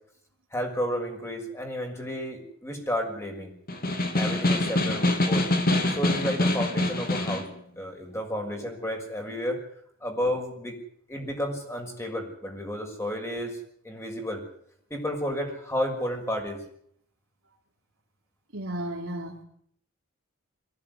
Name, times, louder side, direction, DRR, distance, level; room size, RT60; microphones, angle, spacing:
voice 1, 0.5-3.5 4.1-5.5 6.0-7.5 7.8-9.6 10.0-10.8 11.1-13.6 13.8-14.4 14.9-16.6, equal, 15° left, 3 dB, 6.2 m, -31 dB
Snare drum, 3.7-7.5, left 1 dB, 45° left, 2.8 m, -25 dB
voice 2, 18.5-19.4, right 1 dB, 65° right, -3 dB, 3.7 m, -34 dB
23.0 x 17.0 x 9.6 m, 0.66 s
head